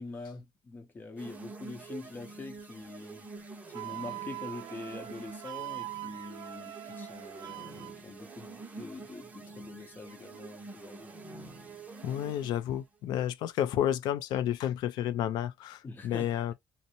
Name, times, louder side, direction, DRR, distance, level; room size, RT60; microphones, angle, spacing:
voice 1, 0.0-3.3 3.7-11.2 15.8-16.4, left 3 dB, 25° left, 0.7 m, -44 dB
sound 1, 1.2-12.7, right 4 dB, 20° right, 0.7 m, -47 dB
Wind instrument woodwind instrument, 3.7-7.9, right 17 dB, 60° right, 0.4 m, -42 dB
voice 2, 12.0-16.5, left 11 dB, 75° left, 0.4 m, -31 dB
2.6 x 2.0 x 2.7 m
cardioid pair, 150°, 7 cm